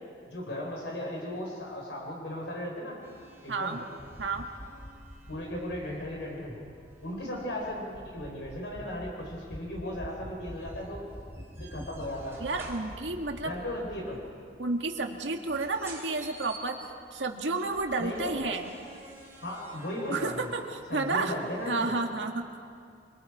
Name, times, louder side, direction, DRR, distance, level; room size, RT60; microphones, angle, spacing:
voice 1, 0.3-3.0 3.4-3.8 5.3-6.6 7.0-11.0 11.6-12.5 13.4-14.2 18.0-18.6 19.4-20.5 20.9-22.0, left 1 dB, 75° left, -1 dB, 4.3 m, -36 dB
sound 1, 3.0-21.7, right 2 dB, 15° right, 3.4 m, -52 dB
voice 2, 3.5-4.4 12.4-13.5 14.6-16.8 17.1-18.7 20.1-21.3 21.7-22.4, right 3 dB, 85° right, 3 dB, 1.8 m, -31 dB
sound 2, 4.0-14.3, equal, 15° left, 0.9 m, -47 dB
28.0 x 22.5 x 4.9 m, 2.2 s
head